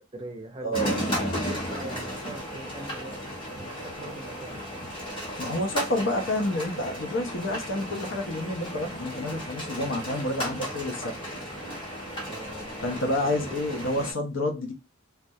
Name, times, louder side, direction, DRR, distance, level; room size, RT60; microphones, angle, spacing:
voice 1, 0.1-4.9 12.2-13.3, right 1 dB, 25° right, 0.4 m, -43 dB
sound 1, 0.7-14.1, equal, 25° left, 0.7 m, -34 dB
voice 2, 5.4-11.2 12.8-14.7, left 1 dB, 70° left, 0.6 m, -29 dB
2.3 x 2.0 x 2.7 m
head